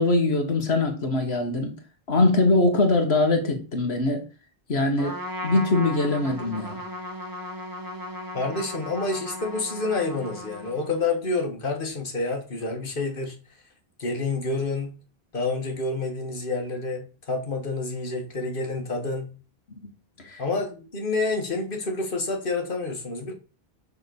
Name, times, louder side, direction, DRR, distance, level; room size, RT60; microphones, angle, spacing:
voice 1, 0.0-1.7 2.1-4.2 4.7-6.8 20.2-20.4, left 2 dB, 90° left, 1.8 m, -22 dB
Trumpet, 5.0-11.1, left 1 dB, 20° right, 1.7 m, -36 dB
voice 2, 8.3-13.4 14.0-14.9 15.3-19.3 20.4-23.3, left 3 dB, 60° left, 2.0 m, -28 dB
6.5 x 5.9 x 7.0 m
omnidirectional pair, 1.0 m